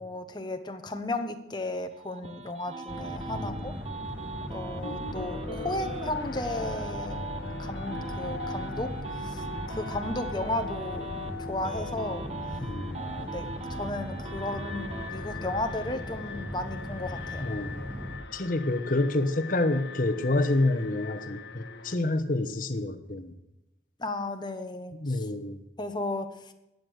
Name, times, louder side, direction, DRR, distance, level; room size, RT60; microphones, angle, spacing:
voice 1, 0.0-3.7 4.5-7.3 7.6-8.9 9.2-11.1 11.4-12.3 12.9-17.5 24.0-25.0 25.8-26.5, left 2 dB, 25° left, 6 dB, 1.1 m, -34 dB
sound 1, 1.7-6.1 6.4-11.3 11.6-15.1, right 3 dB, 30° right, 1.0 m, -40 dB
sound 2, 2.9-18.2, equal, 10° right, 2.7 m, -38 dB
Alarm, 4.1-22.0, left 4 dB, 70° left, 1.6 m, -42 dB
voice 2, 12.6-13.0 17.4-17.8 18.3-23.3 25.0-25.6, left 2 dB, 45° left, 6 dB, 1.1 m, -28 dB
15.0 x 9.2 x 6.5 m, 0.90 s
head